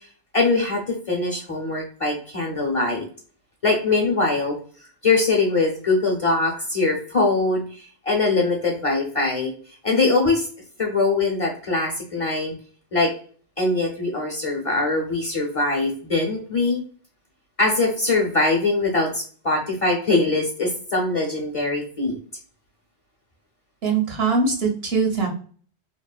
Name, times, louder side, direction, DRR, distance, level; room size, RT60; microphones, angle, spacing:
voice 1, 0.3-3.1 3.6-4.6 5.0-9.5 9.8-10.5 10.8-12.5 12.9-13.1 13.6-16.8 17.6-22.2, left 3 dB, 40° left, -1 dB, 0.6 m, -22 dB
voice 2, 23.8-25.3, right 4 dB, 75° right, 1 dB, 1.0 m, -22 dB
2.9 x 2.0 x 2.3 m, 0.44 s
omnidirectional pair, 1.1 m